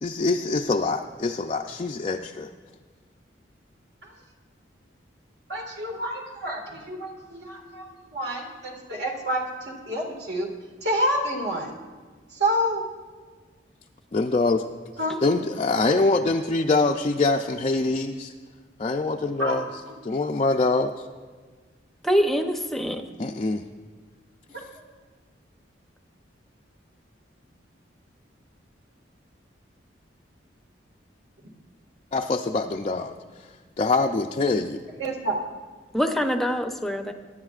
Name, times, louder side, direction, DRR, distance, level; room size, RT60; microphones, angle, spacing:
voice 1, 0.0-2.5 14.1-14.6 15.2-18.3 18.8-19.6 20.0-21.1 23.2-23.6 32.1-33.1 33.8-34.8, left 3 dB, 35° left, 1 dB, 0.4 m, -24 dB
voice 2, 5.5-10.5 10.8-11.7 12.3-12.8 15.0-15.2 19.4-19.6 24.5-24.6 35.0-35.4, equal, 60° right, 1 dB, 1.9 m, -28 dB
voice 3, 22.0-23.0 35.9-37.1, equal, ahead, 5 dB, 0.7 m, -24 dB
23.0 x 11.0 x 2.4 m, 1.5 s
head